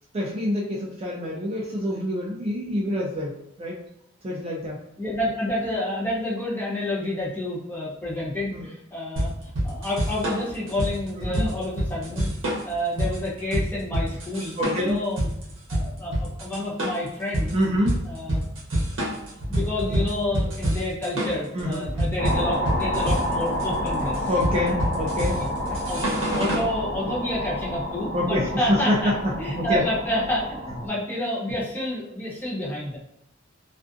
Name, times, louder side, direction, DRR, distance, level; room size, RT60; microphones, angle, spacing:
voice 1, 0.1-3.8 4.2-4.8 8.5-8.7 11.2-11.5 14.6-15.0 17.5-18.0 21.5-21.9 24.3-25.4 28.1-29.8, left 1 dB, 30° right, -3 dB, 0.3 m, -26 dB
voice 2, 5.0-9.3 9.6-12.3 12.6-15.3 15.7-17.5 18.1-18.4 19.5-24.3 25.4-25.5 25.9-26.0 26.4-29.1 29.4-33.0, left 1 dB, 10° left, -6 dB, 0.7 m, -29 dB
sound 1, 9.2-26.7, right 1 dB, 70° right, 0.8 m, -27 dB
sound 2, 22.2-30.9, equal, 45° left, 0.9 m, -29 dB
2.4 x 2.4 x 2.4 m, 0.78 s
head